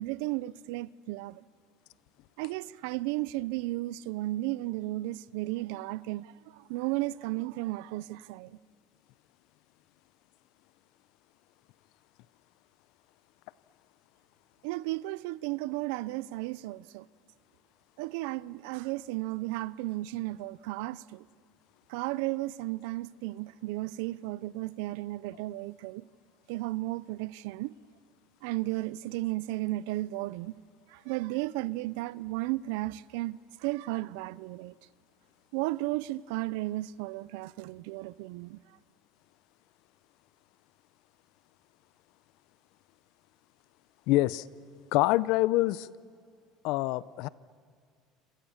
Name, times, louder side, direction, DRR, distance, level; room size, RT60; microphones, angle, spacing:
voice 1, 0.0-1.4 2.4-8.6 14.6-17.0 18.0-21.2 21.9-26.0 26.5-27.7 28.4-30.5 30.9-34.8 35.5-38.6, right 18 dB, 85° right, 0.6 m, -34 dB
voice 2, 44.1-44.5 44.9-45.9 46.6-47.3, left 18 dB, 65° left, 0.7 m, -25 dB
28.0 x 27.0 x 7.3 m
cardioid pair, 160°, 0 cm